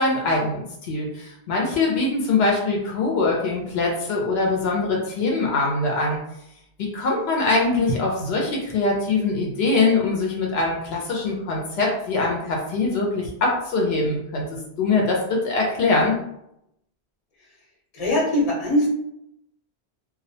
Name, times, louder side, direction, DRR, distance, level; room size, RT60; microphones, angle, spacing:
voice 1, 0.0-6.2 6.9-14.5 14.8-16.2, left 3 dB, 80° left, -1 dB, 0.8 m, -23 dB
voice 2, 17.9-18.9, left 1 dB, 40° left, -3 dB, 0.8 m, -21 dB
2.2 x 2.1 x 2.6 m, 0.79 s
omnidirectional pair, 1.0 m